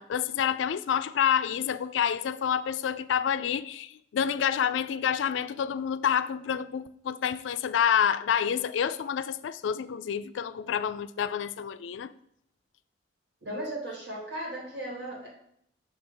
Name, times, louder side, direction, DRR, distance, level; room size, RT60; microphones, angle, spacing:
voice 1, 0.0-12.1, left 8 dB, 80° left, 0.3 m, -28 dB
voice 2, 13.4-15.3, right 1 dB, 65° right, 2.6 m, -36 dB
6.4 x 3.4 x 5.3 m
head